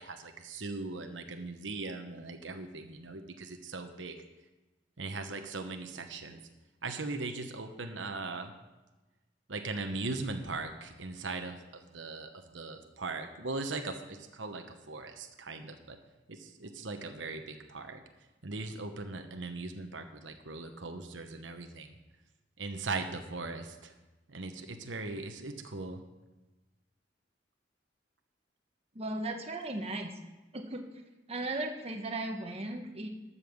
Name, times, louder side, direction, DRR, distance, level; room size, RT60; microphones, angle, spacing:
voice 1, 0.0-4.2 5.0-6.4 6.8-8.5 9.5-16.0 16.3-18.0 18.4-21.9 22.6-23.9 24.3-26.0, right 3 dB, 90° right, 6 dB, 1.1 m, -39 dB
voice 2, 28.9-30.1 30.5-30.8 31.3-33.1, right 2 dB, 35° right, 3 dB, 1.2 m, -36 dB
13.0 x 5.7 x 7.1 m, 1.1 s
head